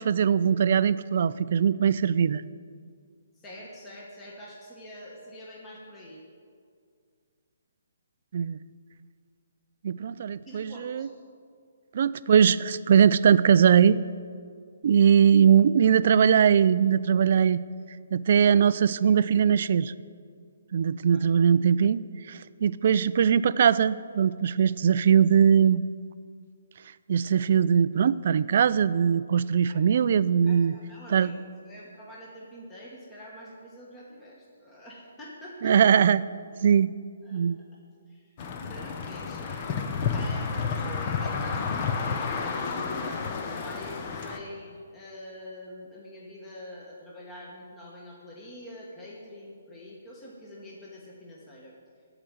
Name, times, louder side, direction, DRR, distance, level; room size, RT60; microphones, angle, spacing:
voice 1, 0.0-2.4 8.3-8.6 9.8-11.1 11.9-14.0 14.8-17.6 18.1-19.9 20.7-22.0 22.3-25.8 27.1-30.7 31.1-31.3 35.6-36.2 36.6-36.9 37.3-37.6, right 7 dB, 40° right, 17 dB, 0.3 m, -21 dB
voice 2, 3.3-6.2 10.4-11.1 21.1-21.3 29.7-29.8 30.5-31.4 31.6-35.8 37.2-37.8 38.1-38.4 38.7-39.7 40.1-43.2 43.6-51.7, left 1 dB, 10° left, -4 dB, 1.2 m, -45 dB
sound 1, 38.4-44.4, left 5 dB, 25° left, 0.7 m, -31 dB
14.5 x 4.9 x 9.2 m, 2.2 s
hypercardioid pair, 170°, 0 cm